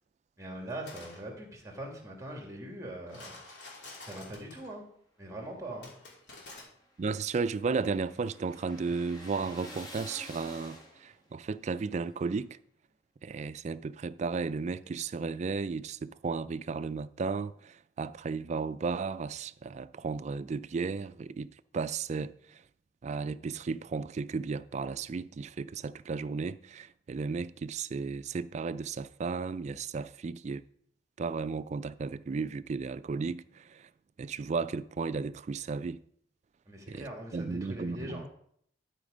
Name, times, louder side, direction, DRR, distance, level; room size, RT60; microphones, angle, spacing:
voice 1, 0.4-3.4 4.0-4.8 5.2-5.9 36.7-38.3, right 1 dB, 20° right, 2.2 m, -42 dB
sound 1, 0.7-1.2 3.1-4.7 5.8-6.6, left 3 dB, 80° left, 3.1 m, -48 dB
sound 2, 5.8-11.3, left 1 dB, 25° left, 2.0 m, -49 dB
voice 2, 7.0-12.6 13.2-22.6 23.0-30.6 31.2-33.9 34.2-36.0 36.9-38.3, right 4 dB, 40° right, 0.3 m, -34 dB
12.0 x 5.1 x 5.1 m
head